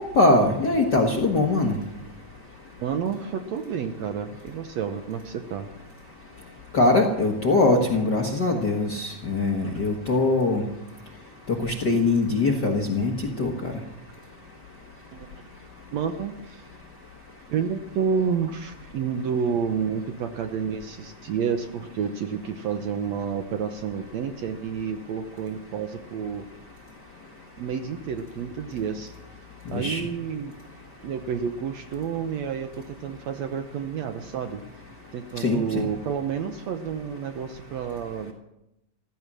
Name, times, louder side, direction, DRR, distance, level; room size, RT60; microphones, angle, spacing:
voice 1, 0.0-1.8 6.7-10.6 11.5-13.7 29.7-30.0 35.4-35.9, left 2 dB, 45° left, 1 dB, 1.4 m, -22 dB
voice 2, 2.8-5.7 15.1-15.5 15.9-16.7 17.5-26.5 27.6-29.1 29.7-30.6 31.0-34.6 35.1-38.3, right 7 dB, 70° right, 7 dB, 1.8 m, -30 dB
15.5 x 14.5 x 6.2 m, 0.86 s
omnidirectional pair, 3.9 m